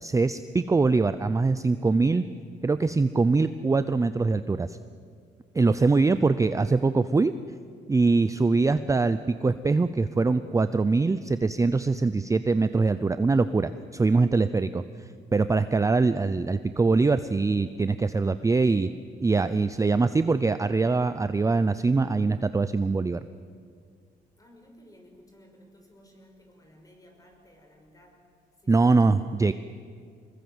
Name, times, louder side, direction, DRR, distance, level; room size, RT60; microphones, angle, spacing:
voice 1, 0.0-2.2 2.6-4.8 5.5-7.3 7.9-14.8 15.3-18.9 19.2-23.2 28.7-29.5, right 3 dB, 15° right, 12 dB, 0.6 m, -23 dB
voice 2, 5.9-6.3 24.4-28.3 28.6-29.1, equal, 20° left, 3 dB, 5.8 m, -56 dB
25.5 x 21.0 x 8.0 m, 2.1 s
cardioid pair, 110°, 18 cm